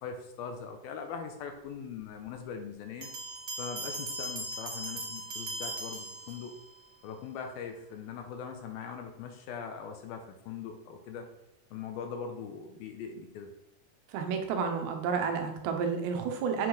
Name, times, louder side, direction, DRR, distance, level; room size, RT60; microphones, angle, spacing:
voice 1, 0.0-3.1 3.6-6.5 7.0-11.3 11.7-13.5, left 6 dB, 80° left, 4 dB, 2.4 m, -41 dB
Bell, 3.0-6.8, right 2 dB, 60° right, 1.1 m, -39 dB
voice 2, 14.1-16.7, right 6 dB, 85° right, 5 dB, 3.3 m, -31 dB
8.1 x 6.2 x 4.9 m, 0.89 s
omnidirectional pair, 4.8 m